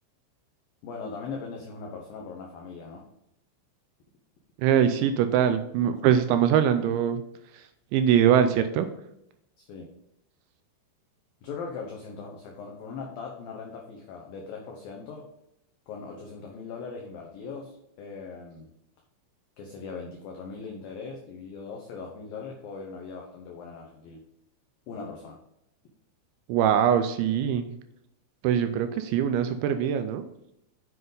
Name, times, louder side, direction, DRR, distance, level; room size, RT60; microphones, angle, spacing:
voice 1, 0.8-3.1 9.6-9.9 11.4-15.3 15.9-18.7 19.6-24.2 24.9-25.4, left 5 dB, 85° left, 1 dB, 2.0 m, -40 dB
voice 2, 4.6-7.2 7.5-8.9 26.5-27.7 28.4-30.2, right 9 dB, 80° right, 9 dB, 2.7 m, -23 dB
7.8 x 7.6 x 3.9 m, 0.79 s
omnidirectional pair, 5.6 m